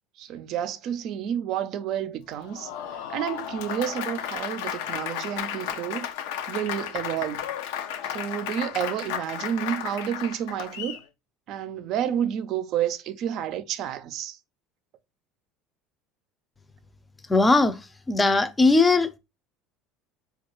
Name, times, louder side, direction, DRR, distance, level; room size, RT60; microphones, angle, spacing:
voice 1, 0.2-2.7 3.1-6.1 6.5-7.5 8.1-11.0 11.5-14.4, right 10 dB, 60° right, 0.4 m, -30 dB
Applause, 2.3-11.0, left 9 dB, 80° left, 0.4 m, -33 dB
voice 2, 17.3-17.8 18.1-19.2, left 3 dB, 15° left, 0.5 m, -19 dB
4.4 x 2.4 x 2.9 m
supercardioid pair, 95°, 0 cm